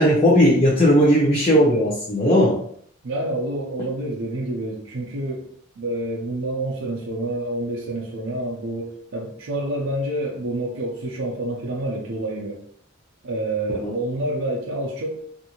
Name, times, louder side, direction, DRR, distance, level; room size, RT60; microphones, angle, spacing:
voice 1, 0.0-2.6 13.8-13.9, equal, 25° left, -7 dB, 0.6 m, -17 dB
voice 2, 3.0-5.5 5.8-12.6 13.2-15.3, right 1 dB, 75° right, -3 dB, 0.6 m, -28 dB
2.6 x 2.5 x 2.9 m, 0.63 s
head